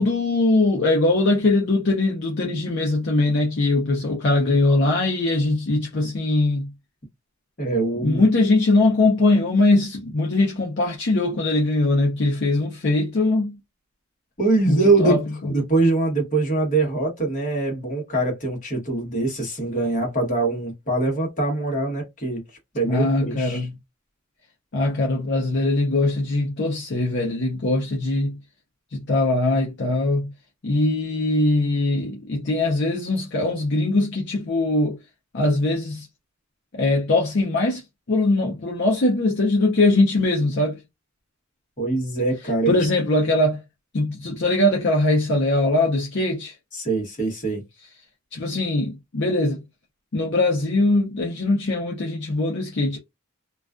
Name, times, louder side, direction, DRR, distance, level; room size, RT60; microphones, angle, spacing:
voice 1, 0.0-6.7 8.0-13.6 14.7-15.5 22.9-23.7 24.7-28.4 28.9-30.3 30.6-35.0 35.3-36.1 36.7-37.8 38.1-40.8 42.7-43.6 43.9-46.5 48.3-49.6 50.1-53.0, left 2 dB, 55° left, 0.6 m, -21 dB
voice 2, 7.6-8.2 14.4-15.2 15.5-22.4 22.7-23.7 41.8-42.7 46.7-47.6, right 2 dB, 40° left, 1.0 m, -23 dB
2.3 x 2.3 x 2.3 m
head